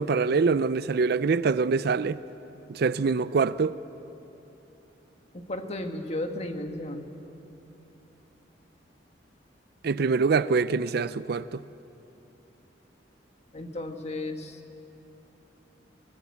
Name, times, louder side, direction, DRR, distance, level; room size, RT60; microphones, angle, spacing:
voice 1, 0.0-2.2 2.7-3.8 9.8-11.6, right 4 dB, 60° right, 0.4 m, -24 dB
voice 2, 5.3-7.1 13.5-14.6, left 1 dB, 35° left, 1.6 m, -34 dB
20.0 x 19.0 x 8.4 m
head